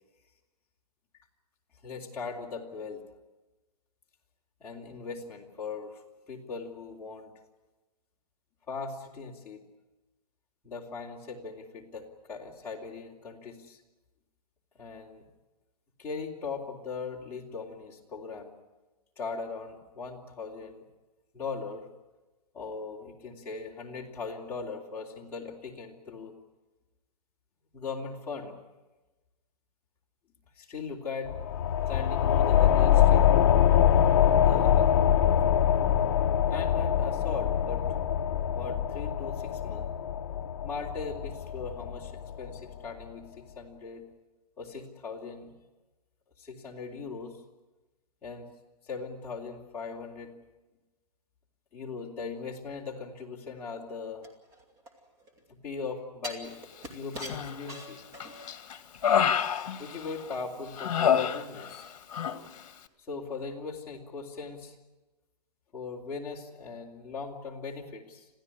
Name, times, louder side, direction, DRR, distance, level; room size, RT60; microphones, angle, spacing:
voice 1, 1.8-3.0 4.6-6.0 6.3-7.3 8.7-9.6 10.6-13.8 14.8-15.2 16.0-18.5 19.2-20.8 21.3-21.8 22.5-26.3 27.7-28.5 30.6-31.3 31.9-33.5 34.3-35.0 36.5-37.8 38.5-39.9 40.6-42.1 42.4-44.0 44.6-45.5 46.4-47.4 48.2-48.5 48.8-50.3 51.7-54.3 55.5-56.6 56.9-58.0 59.8-61.9 63.1-64.7 65.7-68.3, left 4 dB, 10° left, -5 dB, 3.0 m, -39 dB
sound 1, 31.2-42.5, left 9 dB, 35° left, 1.0 m, -24 dB
sound 2, 54.2-55.4 56.2-58.6 59.0-59.1, equal, 20° right, 2.5 m, -43 dB
Human voice, 57.2-57.8 58.2-60.3 60.8-61.8 62.1-62.4, left 8 dB, 55° left, 1.9 m, -28 dB
27.0 x 16.0 x 9.8 m, 1.1 s
hypercardioid pair, 175°, 20 cm